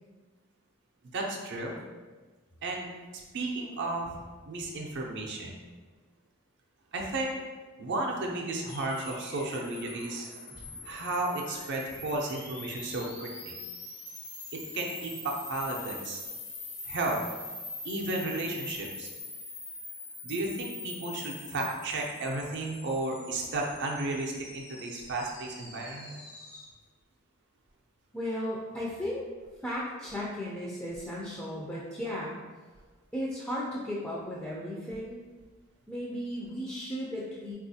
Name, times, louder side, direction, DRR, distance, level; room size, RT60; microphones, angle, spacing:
voice 1, 1.1-1.8 2.6-2.9 3.3-4.2 4.4-5.6 6.9-7.3 7.8-10.3 10.8-13.6 14.5-16.2 16.9-17.2 17.8-19.1 20.2-26.2, right 2 dB, 55° right, 0 dB, 0.5 m, -33 dB
sound 1, 8.7-26.6, left 2 dB, 80° left, 0.9 m, -44 dB
voice 2, 28.1-29.3 29.6-32.4 33.1-35.2 35.9-37.5, equal, 10° left, -6 dB, 0.3 m, -35 dB
3.6 x 2.4 x 2.7 m, 1.3 s
head